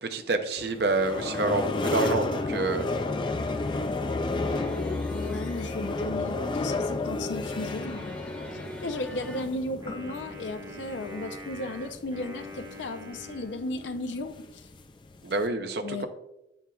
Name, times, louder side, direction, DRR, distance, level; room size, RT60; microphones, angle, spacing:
voice 1, 0.0-2.9 15.2-16.1, right 3 dB, 60° right, 8 dB, 0.6 m, -28 dB
sound 1, 0.6-15.5, left 3 dB, 25° left, 0.4 m, -32 dB
sound 2, 4.4-6.0 7.4-9.4, equal, 10° left, 1.0 m, -44 dB
voice 2, 5.1-8.1 8.8-14.6 15.8-16.1, left 2 dB, 85° left, 7 dB, 0.6 m, -35 dB
Wind instrument woodwind instrument, 9.8-14.2, left 1 dB, 20° right, 1.0 m, -44 dB
7.1 x 6.3 x 2.3 m, 0.86 s
head